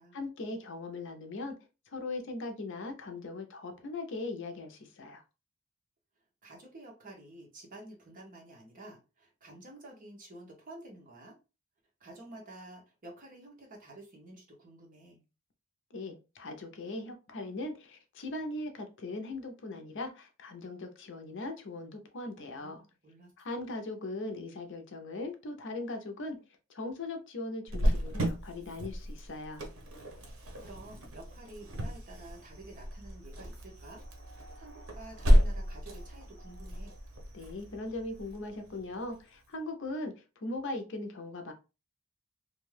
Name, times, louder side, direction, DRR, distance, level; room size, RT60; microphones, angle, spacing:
voice 1, 0.1-1.5 1.9-5.2 15.9-22.8 23.4-26.4 26.7-29.6 37.3-41.5, left 2 dB, 60° left, 5 dB, 0.6 m, -39 dB
voice 2, 6.4-11.3 12.0-15.2 22.6-23.6 30.6-34.0 34.6-36.9, right 2 dB, 40° right, -1 dB, 1.0 m, -50 dB
Cricket, 27.7-39.1, equal, 80° right, 0.7 m, -32 dB
2.6 x 2.3 x 3.2 m, 0.30 s
head